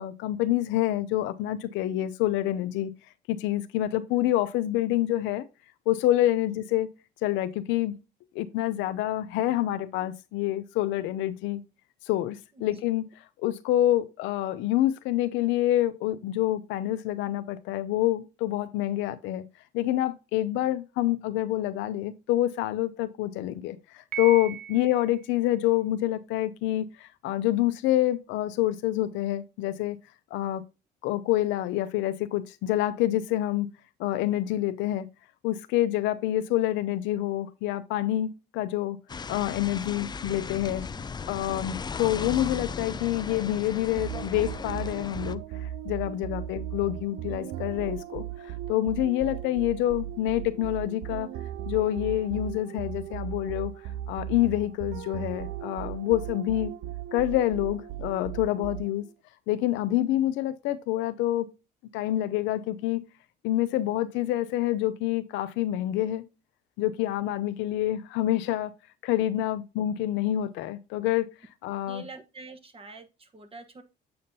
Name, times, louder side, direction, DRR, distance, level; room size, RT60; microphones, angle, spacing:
voice 1, 0.0-2.9 3.3-5.5 5.9-6.9 7.2-7.9 8.3-11.6 12.1-13.0 13.4-19.4 19.7-30.0 30.3-30.6 31.0-33.7 34.0-35.1 35.4-39.0 39.3-40.9 41.3-51.3 51.7-53.7 54.1-56.7 57.1-59.0 59.5-61.5 61.9-63.0 63.4-66.2 66.8-68.7 69.0-71.3 71.6-72.0, left 14 dB, 85° left, 0.6 m, -27 dB
Piano, 24.1-25.2, right 9 dB, 50° right, 1.1 m, -37 dB
sound 1, 39.1-45.4, left 5 dB, 25° left, 0.4 m, -36 dB
sound 2, 44.0-59.1, right 12 dB, 70° right, 0.4 m, -37 dB
voice 2, 71.9-73.8, right 3 dB, 30° right, 1.3 m, -46 dB
7.8 x 5.2 x 2.8 m
supercardioid pair, 80°, 19 cm